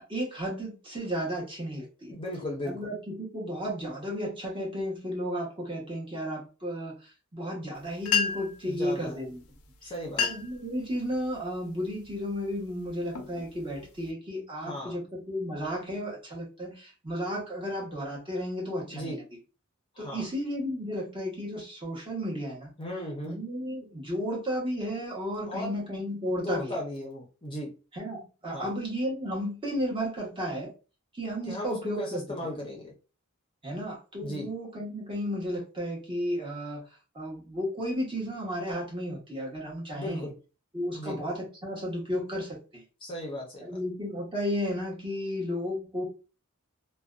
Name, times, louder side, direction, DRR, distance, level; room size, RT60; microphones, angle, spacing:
voice 1, 0.1-2.2 2.6-9.4 9.8-9.9 10.2-19.2 20.0-22.7 23.2-26.8 27.9-30.7 31.1-32.4 33.6-36.8 37.1-40.3 40.7-42.8 43.6-46.0, equal, 25° right, -3 dB, 0.9 m, -33 dB
voice 2, 2.1-2.9 8.6-9.2 9.8-10.3 14.6-15.0 18.9-19.2 19.9-20.2 22.8-23.4 25.5-25.8 26.4-27.7 28.5-28.7 31.5-32.9 34.2-34.5 39.9-40.3 40.9-41.2 43.0-43.8, left 1 dB, 25° left, -2 dB, 0.6 m, -36 dB
sound 1, 7.8-7.9 8.0-8.6 9.5-9.7 10.0-10.6 11.1-11.5 12.1-12.3 12.9-14.1, left 6 dB, 85° left, 0.5 m, -30 dB
2.5 x 2.2 x 2.3 m, 0.33 s
head